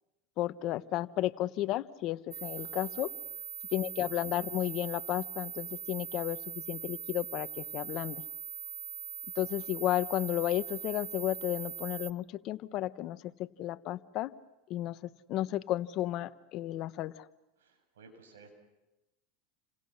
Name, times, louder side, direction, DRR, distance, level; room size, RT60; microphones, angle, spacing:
voice 1, 0.4-3.1 3.7-8.2 9.4-14.3 14.7-17.3, left 14 dB, 50° left, 14 dB, 1.0 m, -33 dB
sound 1, 2.3-12.1, right 7 dB, 25° right, 0.9 m, -42 dB
voice 2, 2.6-3.3 17.6-18.5, right 4 dB, 90° right, 5 dB, 7.5 m, -57 dB
29.5 x 27.0 x 6.5 m, 0.96 s
supercardioid pair, 115°, 0 cm